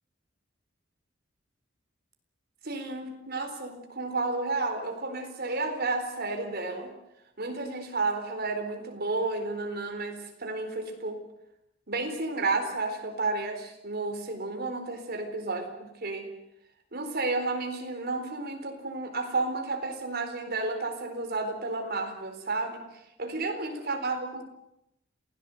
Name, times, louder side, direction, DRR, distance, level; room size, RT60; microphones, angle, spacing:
voice 1, 2.6-6.9 7.4-11.2 11.9-16.3 16.9-22.8 23.2-24.4, right 3 dB, 55° right, 5 dB, 4.2 m, -32 dB
27.5 x 17.0 x 7.9 m, 0.85 s
head